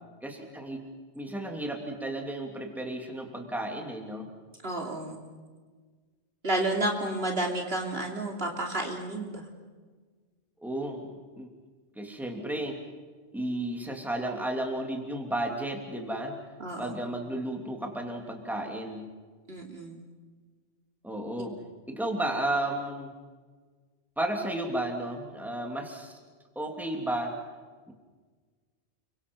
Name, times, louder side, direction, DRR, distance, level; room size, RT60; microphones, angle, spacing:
voice 1, 0.2-0.9 1.1-4.3 10.6-11.1 11.4-11.5 11.9-12.8 13.3-16.4 16.8-19.1 21.0-21.6 21.9-23.1 24.2-26.2 26.5-27.4 27.9-28.0, right 1 dB, ahead, 2 dB, 3.1 m, -33 dB
voice 2, 4.6-5.2 6.4-9.5 16.6-17.0 19.5-20.0, right 1 dB, 60° right, 1 dB, 3.4 m, -31 dB
30.0 x 24.5 x 5.6 m, 1.5 s
omnidirectional pair, 1.2 m